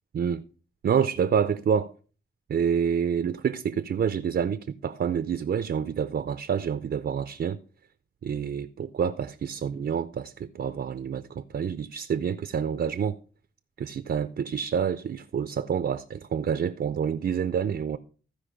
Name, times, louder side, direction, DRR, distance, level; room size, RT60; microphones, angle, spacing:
voice 1, 0.1-0.4 0.8-1.9 2.5-7.6 8.2-13.2 13.8-18.0, right 7 dB, 55° right, 0.5 m, -28 dB
14.0 x 5.1 x 5.1 m
wide cardioid pair, 135°, 20 cm